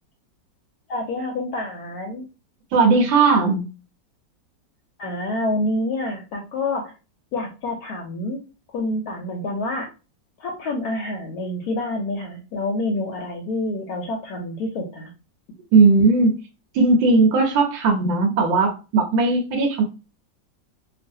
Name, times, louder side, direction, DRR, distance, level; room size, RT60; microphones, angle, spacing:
voice 1, 0.9-2.2 5.0-6.9 7.3-8.4 8.7-9.9 10.4-15.1, left 2 dB, 70° left, 2 dB, 0.9 m, -27 dB
voice 2, 2.7-3.7 15.7-16.3 16.7-19.8, right 3 dB, 85° right, 2 dB, 1.4 m, -17 dB
3.1 x 2.4 x 2.6 m, 0.31 s
omnidirectional pair, 2.0 m